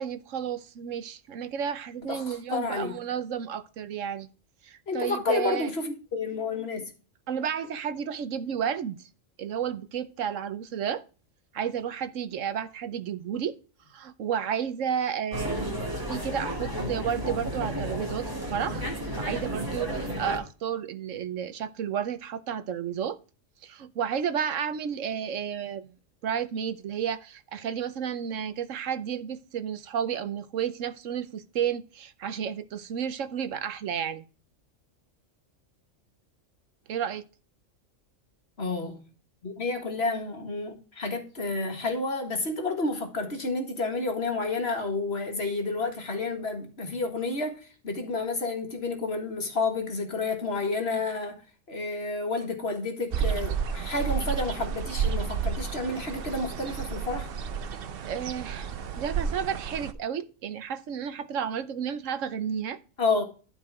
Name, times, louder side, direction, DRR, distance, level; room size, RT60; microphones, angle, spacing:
voice 1, 0.0-4.3 4.6-5.7 7.3-9.1 9.4-11.0 11.5-13.6 13.9-15.8 16.1-18.9 19.2-23.2 23.6-25.9 26.2-34.2 36.9-37.2 58.0-62.8, right 8 dB, 75° right, 1.1 m, -32 dB
voice 2, 2.1-2.9 4.9-6.9 16.7-16.9 38.6-39.0 39.4-51.4 51.7-57.3 63.0-63.2, left 3 dB, 50° left, 2.0 m, -30 dB
sound 1, 15.3-20.4, equal, 15° right, 2.4 m, -32 dB
sound 2, 53.1-59.9, right 7 dB, 55° right, 0.8 m, -31 dB
11.5 x 4.6 x 4.7 m
omnidirectional pair, 1.3 m